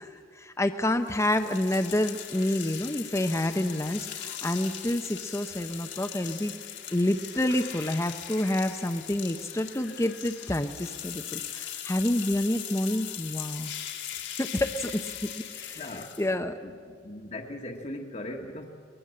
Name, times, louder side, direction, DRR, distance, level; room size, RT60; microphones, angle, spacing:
voice 1, 0.0-6.5 6.9-13.7 14.4-15.8 16.2-16.6, left 1 dB, 15° left, 6 dB, 0.6 m, -28 dB
sound 1, 1.1-16.3, left 10 dB, 75° left, 2.0 m, -40 dB
voice 2, 15.7-16.2 16.6-18.7, left 1 dB, 40° left, 1 dB, 1.3 m, -39 dB
23.0 x 21.0 x 7.6 m, 2.2 s
head